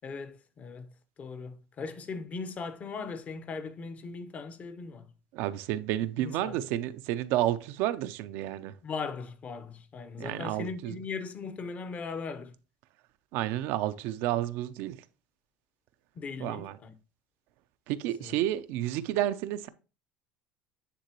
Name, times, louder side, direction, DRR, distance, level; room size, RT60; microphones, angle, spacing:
voice 1, 0.0-0.9 1.2-5.0 6.2-6.6 8.8-12.5 16.1-16.9 18.2-18.3, left 4 dB, 40° left, 0.8 m, -39 dB
voice 2, 5.3-8.7 10.2-10.9 13.3-15.0 16.4-16.8 17.9-19.7, right 13 dB, 75° right, 0.5 m, -31 dB
9.5 x 3.7 x 2.9 m
supercardioid pair, 100°, 4 cm